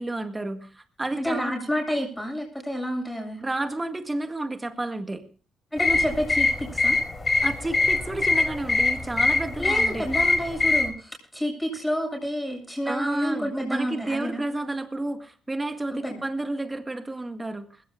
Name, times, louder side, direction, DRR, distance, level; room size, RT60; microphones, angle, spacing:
voice 1, 0.0-1.5 3.4-5.2 7.4-10.1 12.8-17.8, right 2 dB, 20° right, 7 dB, 1.8 m, -31 dB
voice 2, 1.2-3.4 5.7-7.0 9.6-14.4 15.9-16.2, equal, 5° left, 2 dB, 7.5 m, -29 dB
sound 1, 5.8-10.9, left 3 dB, 25° left, 4.7 m, -23 dB
20.5 x 17.0 x 2.4 m, 0.39 s
cardioid pair, 90°, 0 cm